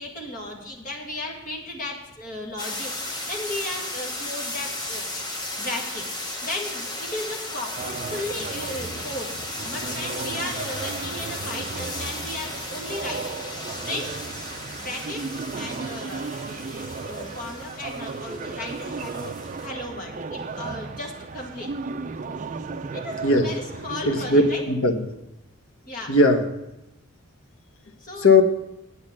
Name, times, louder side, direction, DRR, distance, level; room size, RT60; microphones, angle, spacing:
voice 1, 0.0-5.1 5.6-6.1 6.4-9.3 9.6-13.3 13.8-14.2 14.8-15.3 15.6-16.7 17.0-21.7 22.9-24.6 25.9-26.1 28.0-28.3, left 1 dB, 40° left, 0 dB, 1.9 m, -35 dB
sound 1, 2.6-19.7, left 1 dB, 20° left, 1.1 m, -35 dB
sound 2, 7.8-24.6, right 4 dB, 35° right, 0.4 m, -35 dB
voice 2, 24.1-24.4 24.7-25.0 26.1-26.4 28.2-28.4, left 2 dB, 75° left, 6 dB, 1.0 m, -17 dB
8.9 x 8.5 x 5.9 m, 0.93 s
head